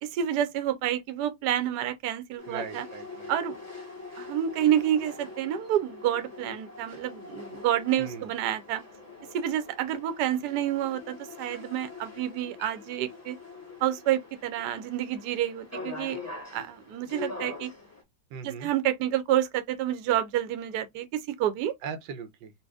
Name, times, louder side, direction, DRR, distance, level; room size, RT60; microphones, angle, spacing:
voice 1, 0.0-2.8 3.3-3.5 4.2-8.8 9.3-13.4 13.8-16.2 16.5-17.7 18.4-21.7, right 11 dB, 70° right, 1.2 m, -29 dB
sound 1, 2.4-18.0, left 3 dB, 10° left, 1.4 m, -43 dB
voice 2, 2.5-3.3 8.0-8.3 18.3-18.7 21.8-22.5, right 6 dB, 85° right, 1.4 m, -39 dB
4.1 x 2.6 x 2.3 m
omnidirectional pair, 2.0 m